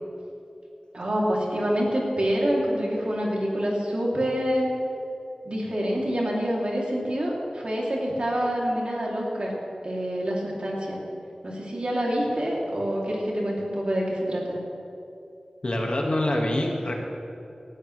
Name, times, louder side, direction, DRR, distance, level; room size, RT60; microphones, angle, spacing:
voice 1, 0.9-4.7 5.4-9.5 9.8-11.0 11.4-14.6, equal, 60° right, -3 dB, 3.0 m, -26 dB
voice 2, 15.6-16.9, left 1 dB, 55° left, 0 dB, 1.8 m, -25 dB
18.0 x 12.0 x 3.3 m, 2.7 s
wide cardioid pair, 65°, 2 cm